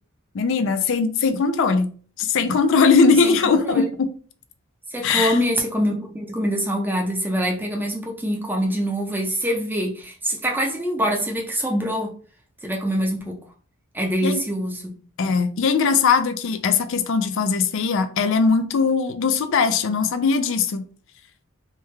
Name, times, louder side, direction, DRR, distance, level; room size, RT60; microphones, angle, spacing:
voice 1, 0.3-1.9 2.2-4.1 5.0-5.4 14.2-14.4 15.2-20.8, left 5 dB, 60° left, 0.4 m, -20 dB
voice 2, 4.9-12.1 12.6-13.4 13.9-14.9, equal, 10° right, 0.5 m, -24 dB
3.3 x 2.3 x 3.1 m
head